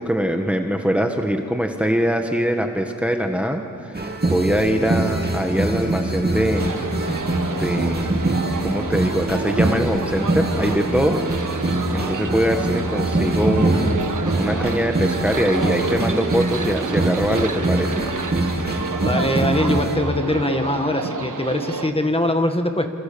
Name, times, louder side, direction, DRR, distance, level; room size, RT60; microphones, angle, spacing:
voice 1, 0.0-6.8 7.5-8.2 8.6-18.0, equal, 5° right, 4 dB, 1.5 m, -23 dB
sound 1, 3.9-20.0, right 2 dB, 30° right, 2.7 m, -23 dB
sound 2, 6.5-21.9, right 4 dB, 80° right, 1.5 m, -30 dB
voice 2, 19.0-22.9, left 1 dB, 20° left, 5 dB, 1.9 m, -22 dB
27.5 x 27.5 x 7.0 m, 2.4 s
wide cardioid pair, 85°, 31 cm